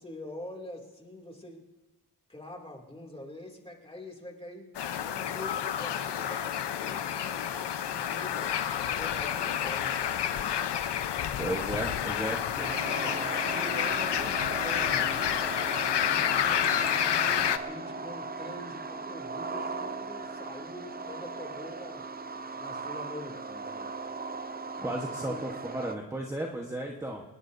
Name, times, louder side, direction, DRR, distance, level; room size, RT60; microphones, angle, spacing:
voice 1, 0.0-1.6 2.3-4.7 5.0-8.6 9.0-10.7 11.4-11.6 12.2-15.3 16.0-22.0 22.6-23.9 24.8-25.0 25.3-25.4, left 1 dB, 15° left, 0 dB, 2.6 m, -45 dB
sound 1, 4.7-17.6, left 9 dB, 90° left, 0.9 m, -29 dB
voice 2, 11.4-12.4 24.8-27.2, right 1 dB, 5° right, 0 dB, 1.2 m, -34 dB
sound 2, 12.6-26.0, right 3 dB, 25° right, 0.6 m, -38 dB
26.5 x 20.0 x 2.7 m, 1.2 s
wide cardioid pair, 135°, 40 cm